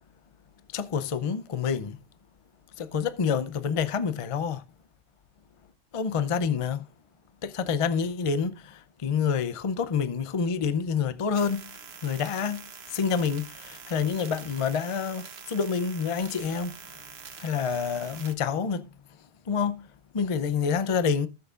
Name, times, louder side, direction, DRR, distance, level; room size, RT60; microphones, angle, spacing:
voice 1, 0.7-2.0 2.8-4.6 5.9-6.8 7.4-8.5 9.0-11.6 12.0-12.6 12.9-16.7 17.4-18.8 19.5-19.8 20.1-21.3, left 6 dB, 40° left, 0.5 m, -27 dB
sound 1, 11.3-18.3, right 6 dB, 50° right, 1.2 m, -45 dB
19.0 x 6.4 x 2.4 m
omnidirectional pair, 1.4 m